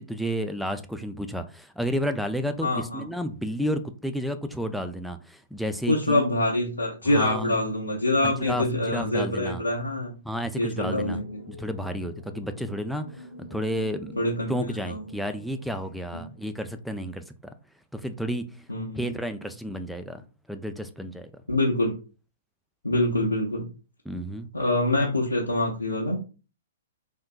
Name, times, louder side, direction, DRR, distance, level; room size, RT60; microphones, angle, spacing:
voice 1, 0.0-6.3 7.0-7.5 8.2-8.6 8.9-9.6 10.2-11.2 11.5-14.2 14.5-17.2 17.9-18.5 18.9-21.3 24.1-24.5, equal, ahead, 0.3 m, -31 dB
voice 2, 2.6-3.0 5.9-10.1 10.6-11.4 14.2-14.5 14.9-15.0 16.1-16.2 18.7-19.0 21.5-21.9 22.8-23.7 24.5-26.3, left 1 dB, 90° left, 0.6 m, -25 dB
sound 1, 10.7-16.8, left 1 dB, 80° right, 1.3 m, -45 dB
3.5 x 2.6 x 2.4 m
figure-of-eight pair, 115°, 0 cm